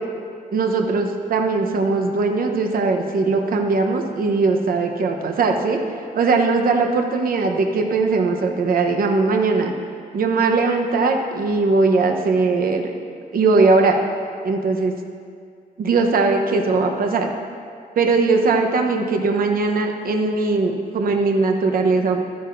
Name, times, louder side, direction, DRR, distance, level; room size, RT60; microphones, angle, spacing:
voice 1, 0.5-5.8 6.1-9.7 10.1-12.9 13.3-14.0 14.4-14.9 15.8-17.3 18.0-22.2, right 3 dB, 65° right, 3 dB, 0.9 m, -19 dB
12.0 x 11.0 x 2.6 m, 2.3 s
wide cardioid pair, 125°, 16 cm